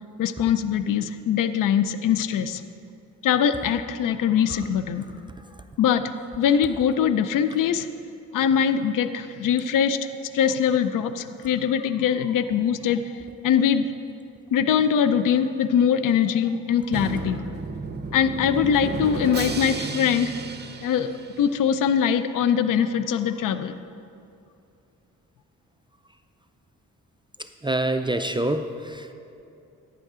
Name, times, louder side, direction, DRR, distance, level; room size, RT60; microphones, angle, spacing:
voice 1, 0.2-2.6 3.2-5.1 5.8-7.9 8.3-10.0 10.3-13.9 14.5-17.4 18.1-20.3 20.8-23.7, left 8 dB, 80° left, 11 dB, 0.5 m, -22 dB
Drum, 16.9-21.8, right 4 dB, 30° right, 0.8 m, -33 dB
voice 2, 27.6-29.1, right 1 dB, 15° right, 7 dB, 0.4 m, -26 dB
11.5 x 8.8 x 3.7 m, 2.6 s
cardioid pair, 80°, 32 cm